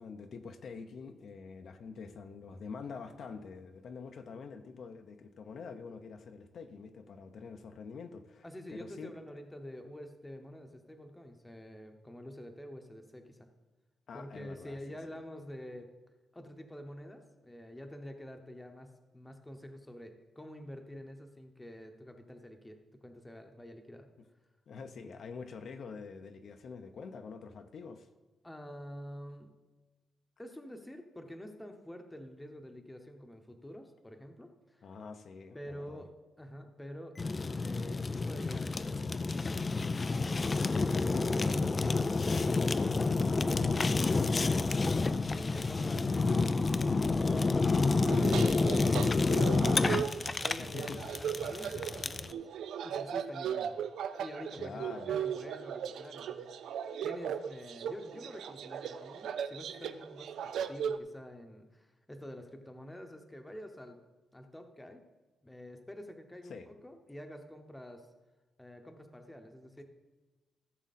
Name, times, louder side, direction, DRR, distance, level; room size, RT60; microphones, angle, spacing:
voice 1, 0.0-9.1 14.1-14.8 24.7-28.1 34.8-36.0 50.6-51.1 54.6-55.2 66.5-66.7, left 5 dB, 55° left, 6 dB, 0.7 m, -46 dB
voice 2, 8.4-13.5 14.1-15.9 16.3-24.1 28.4-29.5 30.4-34.9 35.5-36.1 36.4-40.6 40.9-49.5 50.4-52.5 52.8-53.8 54.2-64.0 64.3-65.0 65.4-68.1 68.6-69.8, equal, 10° left, 5 dB, 0.9 m, -48 dB
Fire, 37.2-52.3, left 3 dB, 25° left, 0.4 m, -29 dB
sound 1, 43.3-48.6, left 3 dB, 80° left, 1.2 m, -47 dB
sound 2, 48.0-61.0, right 8 dB, 85° right, 0.5 m, -37 dB
15.0 x 7.3 x 4.2 m, 1.2 s
wide cardioid pair, 155°, 0 cm